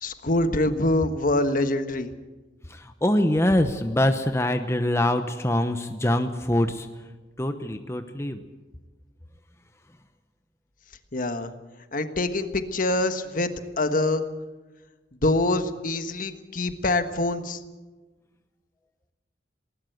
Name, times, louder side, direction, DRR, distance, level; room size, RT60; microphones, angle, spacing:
voice 1, 0.0-2.1 11.1-11.5 11.9-14.3 15.2-17.6, left 2 dB, 50° left, 9 dB, 1.4 m, -25 dB
voice 2, 2.7-6.9 7.4-8.4, left 1 dB, 15° left, 7 dB, 0.9 m, -24 dB
20.0 x 18.5 x 8.0 m, 1.2 s
head